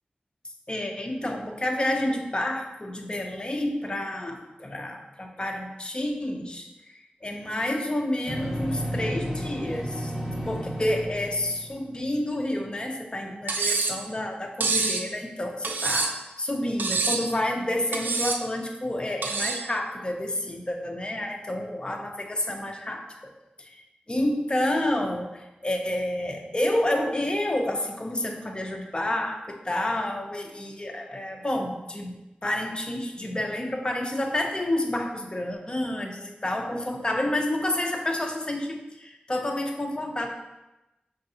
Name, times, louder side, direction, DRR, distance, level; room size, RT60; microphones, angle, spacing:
voice 1, 0.7-10.1 10.5-23.0 23.6-32.2 32.4-40.3, left 1 dB, 30° left, 2 dB, 0.7 m, -29 dB
sound 1, 8.3-12.2, equal, ahead, 0.9 m, -32 dB
Cutlery silverware, 13.5-14.0 14.6-15.0 15.6-16.3 16.8-17.3 17.9-18.4 19.2-19.6, right 4 dB, 85° right, 0.4 m, -26 dB
5.1 x 3.4 x 2.8 m, 1.0 s
wide cardioid pair, 65°, 3 cm